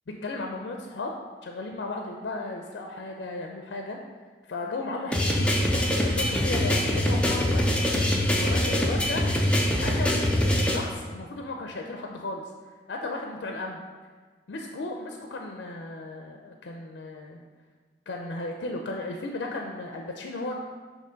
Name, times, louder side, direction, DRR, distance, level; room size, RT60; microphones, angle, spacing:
voice 1, 0.1-1.1 1.4-4.0 4.5-7.8 8.4-9.3 9.8-12.4 12.9-13.8 14.5-17.4 18.1-20.5, left 2 dB, 70° left, 2 dB, 0.5 m, -35 dB
sound 1, 5.1-10.8, equal, 5° left, 0.5 m, -24 dB
6.7 x 2.9 x 5.1 m, 1.4 s
head